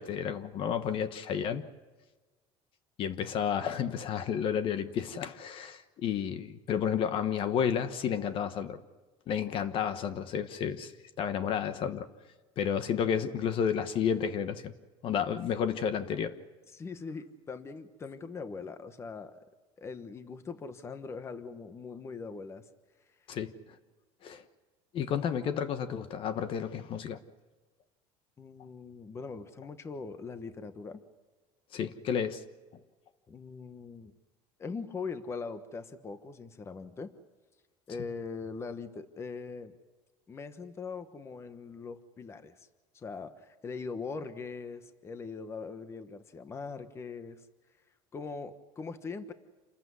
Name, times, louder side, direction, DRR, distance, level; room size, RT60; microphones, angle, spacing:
voice 1, 0.0-1.6 3.0-8.8 9.3-10.9 11.2-12.1 12.6-14.7 15.0-16.3 23.3-23.5 24.2-24.4 24.9-27.2 31.7-32.4, left 8 dB, 45° left, 10 dB, 1.2 m, -31 dB
voice 2, 16.7-19.5 19.8-22.7 28.4-31.0 33.3-34.1 34.6-37.1 37.9-39.7 40.3-42.7 42.9-47.4 48.1-49.3, left 4 dB, 20° left, 10 dB, 1.2 m, -41 dB
28.0 x 14.5 x 9.6 m, 1.3 s
cardioid pair, 145°, 12 cm